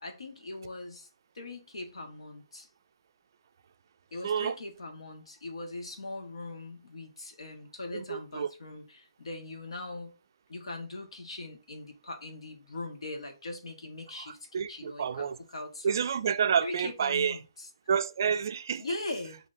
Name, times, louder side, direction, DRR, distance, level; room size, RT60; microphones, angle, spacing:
voice 1, 0.0-1.1 1.3-2.7 4.1-10.1 10.5-15.3 15.5-16.1 16.6-17.7 18.8-19.4, left 2 dB, 80° left, 1.2 m, -41 dB
voice 2, 4.2-4.6 7.9-8.5 14.2-15.4 15.8-17.4 17.9-18.8, right 7 dB, 40° right, 0.3 m, -29 dB
7.2 x 2.7 x 2.6 m
hypercardioid pair, 170°, 3 cm